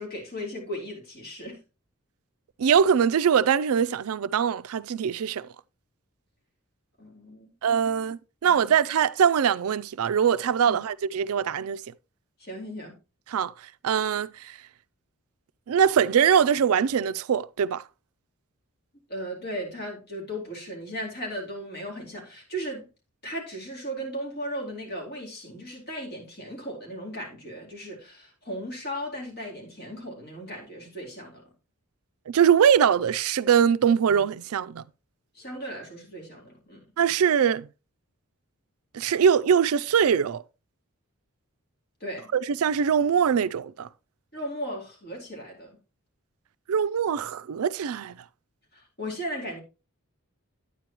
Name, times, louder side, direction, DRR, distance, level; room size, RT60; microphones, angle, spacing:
voice 1, 0.0-1.6 7.0-7.8 8.5-8.7 10.7-10.8 12.4-13.0 19.1-22.9 23.2-31.4 35.3-36.8 42.0-42.3 44.3-45.8 48.7-49.6, equal, 45° left, 3.8 m, -36 dB
voice 2, 2.6-5.5 7.6-11.8 13.3-13.5 13.8-14.6 15.7-17.8 32.3-34.8 37.0-37.7 38.9-40.4 42.3-43.9 46.7-48.2, right 7 dB, 80° right, 0.4 m, -22 dB
9.6 x 9.1 x 3.0 m
head